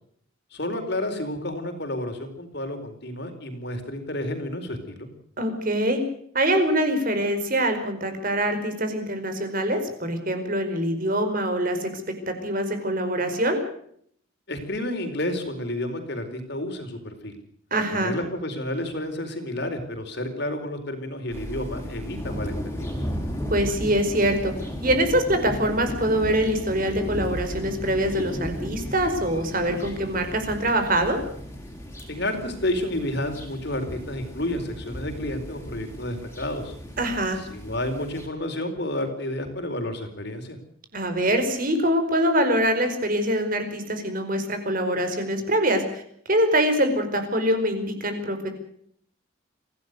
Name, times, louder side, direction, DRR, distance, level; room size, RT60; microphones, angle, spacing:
voice 1, 0.5-5.1 14.5-17.3 18.0-23.0 32.1-36.7 37.5-40.6, left 1 dB, 55° left, 6 dB, 4.5 m, -30 dB
voice 2, 5.4-6.0 6.3-11.9 12.3-13.6 17.7-18.1 23.5-24.5 24.8-31.2 37.0-37.4 40.9-46.0 46.3-48.5, right 1 dB, 40° right, 7 dB, 4.8 m, -24 dB
sound 1, 21.3-38.3, equal, 10° left, 5.4 m, -35 dB
26.0 x 17.0 x 6.7 m, 0.64 s
head